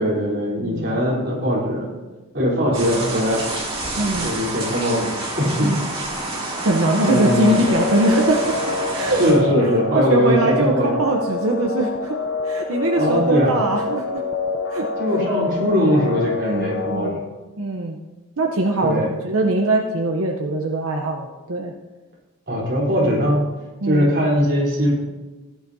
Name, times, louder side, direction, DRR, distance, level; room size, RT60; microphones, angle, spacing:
voice 1, 0.0-1.9 2.3-3.4 4.2-5.1 5.4-5.8 7.1-7.7 9.2-11.0 12.9-13.6 15.0-17.2 18.8-19.1 22.5-23.5 23.8-24.9, equal, 50° right, -4 dB, 3.7 m, -20 dB
voice 2, 0.6-1.0 4.0-4.3 5.6-5.9 6.6-9.2 9.9-14.2 14.7-14.9 16.4-17.2 17.6-18.0 18.4-21.7 23.8-24.1, right 2 dB, 70° right, 2 dB, 0.8 m, -22 dB
sound 1, 2.7-9.3, right 2 dB, 25° right, 2.6 m, -28 dB
sound 2, 7.0-17.1, left 4 dB, 55° left, 0.6 m, -26 dB
16.0 x 11.5 x 2.8 m, 1.2 s
head